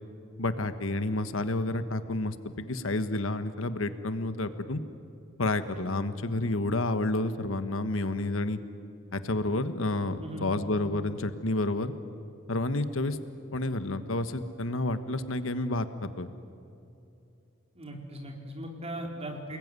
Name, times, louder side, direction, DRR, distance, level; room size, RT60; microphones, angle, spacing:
voice 1, 0.4-4.8 5.4-8.6 9.1-11.9 12.5-13.2 13.5-16.3, left 2 dB, 75° left, 10 dB, 1.3 m, -30 dB
voice 2, 10.2-10.5 17.7-19.6, right 1 dB, 30° right, 1 dB, 4.2 m, -38 dB
29.5 x 21.0 x 9.7 m, 2.7 s
head